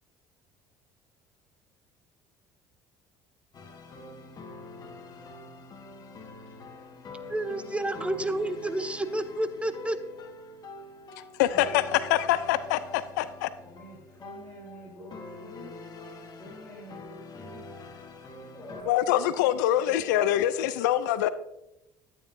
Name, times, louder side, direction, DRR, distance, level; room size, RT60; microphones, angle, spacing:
sound 1, 3.5-18.8, left 2 dB, 45° left, 1.6 m, -45 dB
voice 1, 7.3-10.0, right 1 dB, 10° right, 12 dB, 0.8 m, -30 dB
voice 2, 11.4-13.5 18.9-21.3, left 12 dB, 85° left, 15 dB, 0.5 m, -25 dB
voice 3, 13.6-15.7 16.3-17.7 18.5-20.0, equal, 15° left, -7 dB, 3.5 m, -47 dB
12.0 x 9.0 x 2.7 m, 0.87 s
hypercardioid pair, 75°, 10 cm